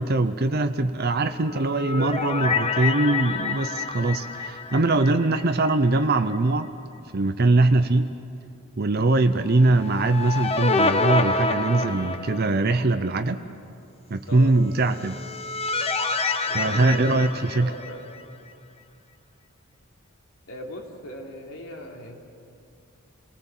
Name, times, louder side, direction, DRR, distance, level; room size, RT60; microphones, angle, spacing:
voice 1, 0.0-6.7 7.1-8.1 8.8-13.4 14.1-15.2 16.5-17.7, right 2 dB, 45° right, 8 dB, 0.7 m, -22 dB
sound 1, 1.4-5.7 6.0-6.1 9.6-12.8 14.8-18.2, left 3 dB, 30° left, 0.9 m, -27 dB
voice 2, 14.3-14.6 16.5-18.0 20.5-22.2, left 1 dB, 70° left, 0 dB, 3.3 m, -39 dB
28.5 x 19.5 x 7.4 m, 2.5 s
head